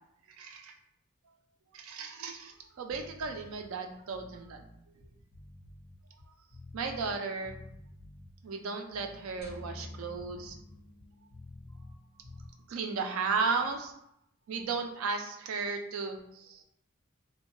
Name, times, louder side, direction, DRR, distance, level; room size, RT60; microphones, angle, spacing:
voice 1, 0.4-0.7 1.7-4.6 6.7-7.6 8.4-10.6 12.7-13.9 14.5-16.6, right 4 dB, 85° right, 4 dB, 0.4 m, -35 dB
sound 1, 2.9-3.5 4.0-7.2 7.4-8.3 8.8-12.0 12.2-12.5, left 1 dB, 50° right, 1.2 m, -50 dB
sound 2, 9.4-11.7, left 1 dB, 30° right, 0.9 m, -48 dB
2.5 x 2.1 x 3.0 m, 0.75 s
head